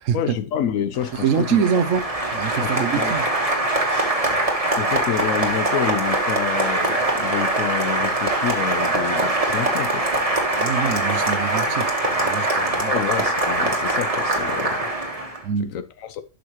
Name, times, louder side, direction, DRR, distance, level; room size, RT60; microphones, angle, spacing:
voice 1, 0.1-1.6 2.6-3.1 3.9-4.1 4.6-10.1 12.9-14.9 15.6-16.2, left 9 dB, 85° left, 1.1 m, -28 dB
Applause, 1.0-15.4, right 2 dB, 30° right, 1.5 m, -23 dB
voice 2, 1.1-2.1 2.3-3.2 10.6-13.0 15.4-15.7, right 7 dB, 75° right, 1.1 m, -24 dB
11.5 x 5.2 x 3.0 m
omnidirectional pair, 1.3 m